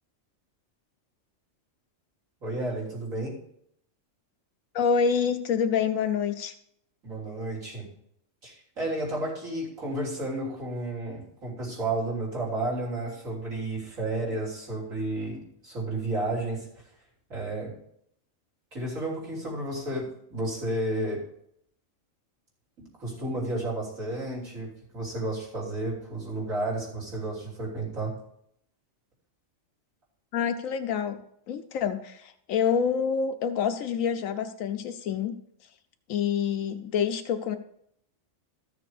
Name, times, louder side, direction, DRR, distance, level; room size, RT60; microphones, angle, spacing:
voice 1, 2.4-3.3 7.0-7.9 8.4-16.8 17.3-17.7 18.7-21.2 23.0-28.1, right 2 dB, 85° right, -5 dB, 4.1 m, -32 dB
voice 2, 4.7-6.5 30.3-31.2 31.5-35.4 36.1-37.6, left 7 dB, 80° left, 8 dB, 1.1 m, -27 dB
13.5 x 6.9 x 4.9 m, 0.72 s
omnidirectional pair, 1.4 m